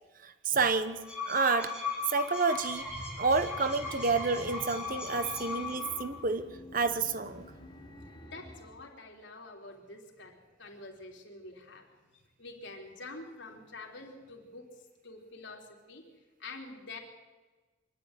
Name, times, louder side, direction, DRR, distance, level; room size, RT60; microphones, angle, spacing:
voice 1, 0.2-1.7 2.1-2.9 3.2-7.5, right 4 dB, 40° right, 10 dB, 1.0 m, -29 dB
sound 1, 0.8-6.2, left 4 dB, 5° right, 5.9 m, -38 dB
sound 2, 2.5-8.8, left 1 dB, 20° left, 3.6 m, -48 dB
voice 2, 8.2-11.9 12.1-16.1 16.4-17.0, left 2 dB, 60° left, 1 dB, 3.7 m, -47 dB
24.5 x 11.5 x 9.7 m, 1.3 s
head